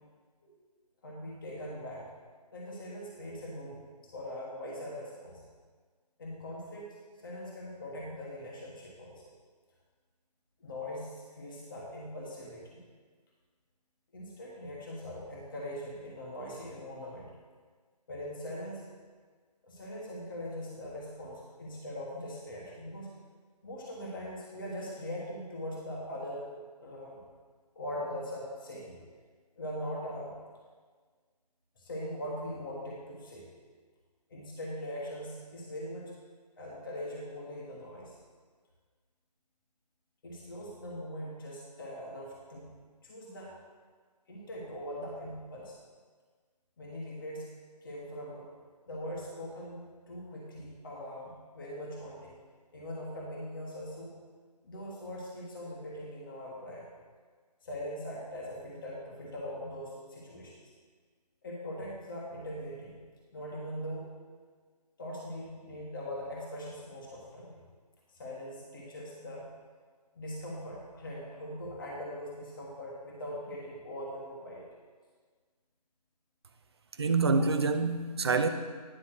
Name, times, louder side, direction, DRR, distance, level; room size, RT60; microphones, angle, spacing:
voice 1, 1.0-2.1 2.5-3.8 4.1-5.4 6.2-7.0 7.2-9.3 10.6-12.8 14.1-17.3 18.1-18.8 19.6-23.1 23.6-26.4 26.8-27.2 27.7-29.0 29.6-30.3 31.7-33.5 34.3-36.1 36.6-38.2 40.2-42.7 43.0-43.5 44.3-45.8 46.8-47.5 47.8-48.5 48.9-52.3 52.7-54.1 54.6-56.9 57.6-60.6 61.4-63.0 63.3-64.1 65.0-67.6 68.1-69.5 70.1-74.7 77.3-77.4, equal, 30° left, -4 dB, 1.4 m, -41 dB
voice 2, 77.0-78.5, right 4 dB, 40° right, 7 dB, 0.5 m, -26 dB
10.0 x 5.3 x 6.2 m, 1.5 s
figure-of-eight pair, 165°, 21 cm